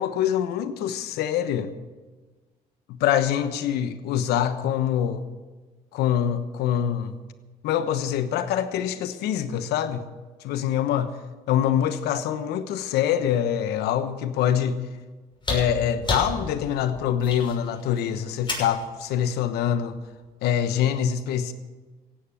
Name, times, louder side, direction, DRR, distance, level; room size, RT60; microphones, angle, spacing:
voice 1, 0.0-1.7 2.9-5.2 5.9-7.2 7.6-10.0 10.4-11.1 11.5-14.8 15.5-20.0 20.4-21.5, left 9 dB, 85° left, 11 dB, 1.1 m, -25 dB
sound 1, 15.3-18.8 20.2-20.3, left 2 dB, 30° left, 6.5 m, -31 dB
16.0 x 10.5 x 7.7 m, 1.3 s
supercardioid pair, 75°, 16 cm